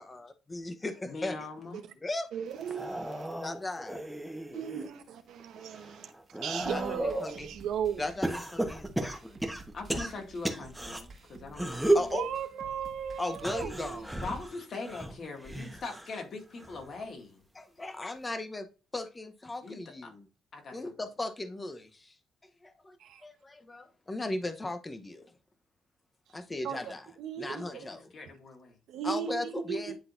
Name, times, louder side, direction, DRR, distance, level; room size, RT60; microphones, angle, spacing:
voice 1, 0.0-1.4 2.0-2.3 3.4-4.0 6.7-7.5 8.0-9.5 11.9-12.3 13.2-14.2 17.5-18.7 18.9-20.2 20.7-21.8 22.6-23.0 23.2-25.3 26.3-27.1 27.4-28.0 29.0-30.0, left 2 dB, 20° left, 0.9 m, -37 dB
voice 2, 1.0-1.9 9.7-12.1 14.2-17.4 19.6-20.1 20.5-20.9 27.7-28.8, left 3 dB, 50° left, 2.1 m, -42 dB
voice 3, 2.3-3.3 4.5-8.0 12.1-14.0 23.0-23.2 26.6-26.9 27.2-27.9 28.9-30.0, right 8 dB, 80° right, 1.0 m, -37 dB
sound 1, 2.6-4.9 5.4-7.4 8.2-11.0 11.5-12.1 13.3-16.2 16.6-17.0 18.2-18.3, right 1 dB, 5° right, 1.2 m, -33 dB
sound 2, 6.6-14.6, right 2 dB, 40° right, 1.6 m, -52 dB
10.0 x 3.9 x 2.6 m
cardioid pair, 90°, 0 cm